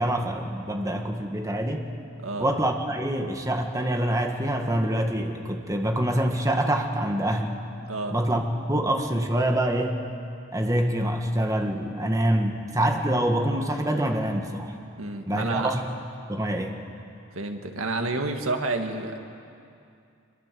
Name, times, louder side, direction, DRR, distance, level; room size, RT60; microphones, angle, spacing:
voice 1, 0.0-1.9 2.4-7.6 8.1-8.4 8.7-10.0 10.5-14.8 15.3-15.8 16.3-16.8, right 1 dB, 15° right, 3 dB, 1.6 m, -25 dB
voice 2, 15.0-15.7 17.3-19.2, right 2 dB, 85° right, 5 dB, 1.9 m, -29 dB
25.5 x 22.0 x 7.7 m, 2.5 s
head